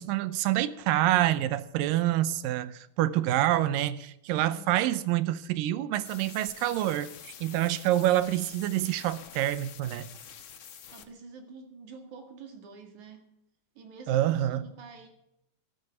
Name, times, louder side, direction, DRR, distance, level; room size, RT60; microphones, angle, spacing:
voice 1, 0.0-10.1 14.1-14.7, right 14 dB, 80° right, 2.3 m, -27 dB
voice 2, 4.3-4.7 10.9-13.3 13.8-15.1, right 5 dB, 60° right, 3.3 m, -47 dB
sound 1, 6.0-11.0, left 8 dB, 90° left, 1.1 m, -47 dB
13.0 x 12.0 x 6.8 m
omnidirectional pair, 4.0 m